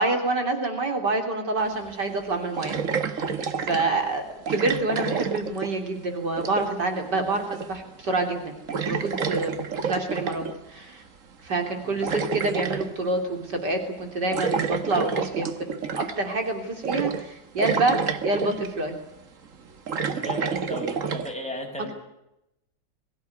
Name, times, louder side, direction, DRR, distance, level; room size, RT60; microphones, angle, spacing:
voice 1, 0.0-3.3 3.7-8.5 8.8-11.0 11.4-18.0 18.2-18.9 20.4-20.6, right 2 dB, 70° right, 4 dB, 3.9 m, -27 dB
sound 1, 1.6-1.7 2.6-3.9 4.5-6.0 6.2-6.9 7.5-7.9 8.2-8.4 8.7-10.6 11.6-12.9 14.3-16.3 16.8-17.3 17.6-18.7 19.4-21.3, right 5 dB, 50° right, 1.7 m, -29 dB
voice 2, 20.1-21.9, equal, 5° left, 2 dB, 6.4 m, -35 dB
23.0 x 16.0 x 9.6 m, 0.87 s
omnidirectional pair, 1.9 m